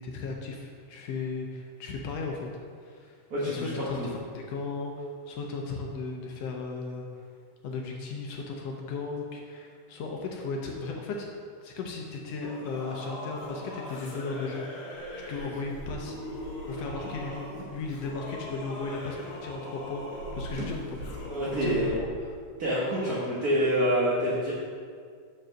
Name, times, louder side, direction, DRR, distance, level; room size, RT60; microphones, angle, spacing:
voice 1, 0.0-2.5 2.8-7.1 7.6-11.3 11.6-15.0 15.3-16.2 16.7-17.5 17.7-21.3 21.6-22.0 23.1-23.2, left 4 dB, 75° left, 1 dB, 1.5 m, -36 dB
voice 2, 3.3-4.1 21.3-21.9 22.6-24.5, equal, 55° right, -9 dB, 1.0 m, -27 dB
Singing / Musical instrument, 12.4-21.8, left 1 dB, 55° left, 1.7 m, -41 dB
sound 1, 14.9-19.4 19.6-22.2, right 1 dB, 80° right, 2.7 m, -43 dB
6.1 x 4.8 x 6.3 m, 2.1 s
omnidirectional pair, 3.5 m